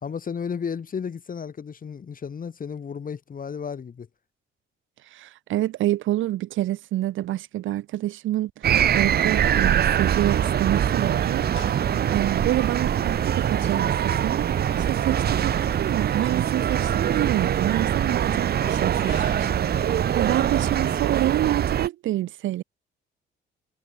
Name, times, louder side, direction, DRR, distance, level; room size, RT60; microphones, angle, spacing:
voice 1, 0.0-4.1, left 6 dB, 45° left, 4.5 m, -33 dB
voice 2, 5.1-11.6 12.1-19.5 20.1-22.6, right 14 dB, 80° right, 1.5 m, -27 dB
sound 1, 8.6-21.9, right 10 dB, 55° right, 0.8 m, -23 dB
sound 2, 10.1-21.3, left 15 dB, 90° left, 5.7 m, -45 dB
cardioid pair, 90°, 20 cm